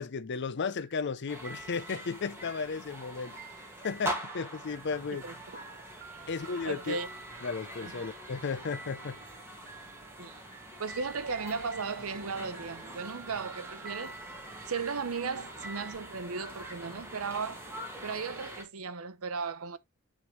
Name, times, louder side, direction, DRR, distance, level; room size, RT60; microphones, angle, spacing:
voice 1, 0.0-3.3 3.8-5.2 6.3-7.0 7.4-9.2, left 5 dB, 55° left, 0.6 m, -34 dB
sound 1, 0.8-1.2 1.4-15.9, right 4 dB, 55° right, 4.5 m, -50 dB
sound 2, 1.3-18.6, right 1 dB, 10° right, 1.9 m, -44 dB
voice 2, 6.6-7.1 7.8-7.9 10.2-10.4 10.8-14.2 14.7-17.6 18.0-19.8, right 5 dB, 75° right, 0.8 m, -36 dB
9.7 x 3.7 x 3.1 m
head